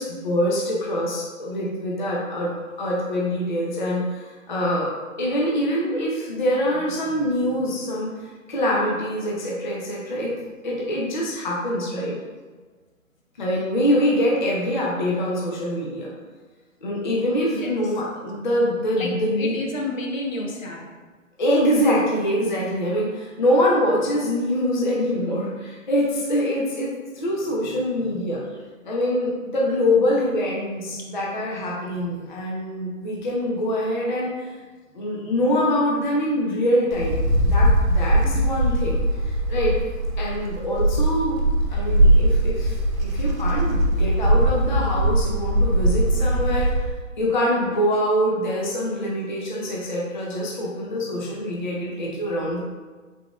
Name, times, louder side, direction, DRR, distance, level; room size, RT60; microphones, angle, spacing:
voice 1, 0.0-2.5 2.8-4.9 5.2-10.3 10.6-12.1 13.4-16.1 16.8-19.6 21.4-28.4 28.8-34.5 34.9-39.0 39.2-39.8 40.2-41.4 41.7-46.9 47.2-52.6, equal, 40° left, -4 dB, 0.4 m, -24 dB
voice 2, 19.4-20.8 44.0-44.1 50.7-50.8, left 2 dB, 75° left, 0 dB, 0.9 m, -30 dB
Wind, 36.9-46.9, right 1 dB, 85° right, 0.8 m, -20 dB
3.7 x 3.6 x 2.3 m, 1.3 s
hypercardioid pair, 170°, 40 cm